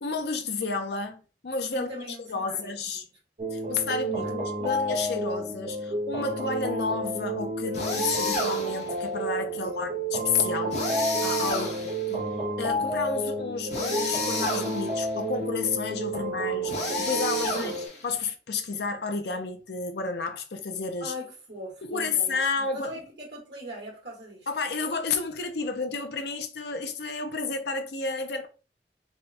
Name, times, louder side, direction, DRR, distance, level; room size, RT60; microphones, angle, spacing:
voice 1, 0.0-1.9 2.3-3.0 3.5-11.7 12.1-12.2 12.6-17.7 18.0-21.1 21.8-23.0 24.5-28.5, left 4 dB, 65° left, 0.6 m, -31 dB
voice 2, 1.7-3.0 4.2-4.4 9.5-9.9 11.5-11.9 16.2-16.3 17.6-17.8 21.0-24.5, equal, 75° right, 1.6 m, -41 dB
sound 1, 3.4-17.9, right 2 dB, 40° right, 0.9 m, -31 dB
sound 2, 7.7-8.9 10.7-12.1 13.7-15.0 16.7-18.1, left 2 dB, 40° left, 1.0 m, -30 dB
3.6 x 2.2 x 4.2 m
head